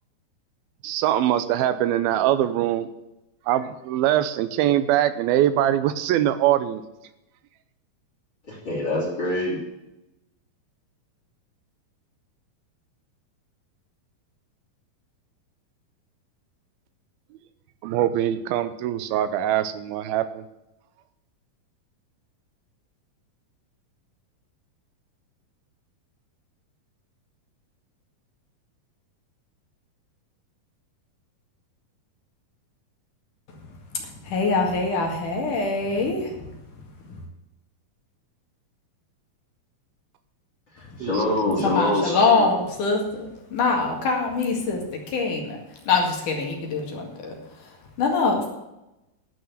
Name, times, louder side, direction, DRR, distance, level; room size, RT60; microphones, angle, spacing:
voice 1, 0.8-2.9 3.5-6.8 17.8-20.5 41.0-41.1, right 12 dB, 85° right, 13 dB, 2.6 m, -22 dB
voice 2, 8.4-9.6 40.7-42.5, left 2 dB, 30° left, -2 dB, 3.5 m, -25 dB
voice 3, 34.0-36.4 37.1-37.2 40.9-41.0 41.6-45.6 45.8-48.5, left 4 dB, 60° left, 1 dB, 3.4 m, -24 dB
11.0 x 6.4 x 8.8 m, 0.93 s
omnidirectional pair, 4.3 m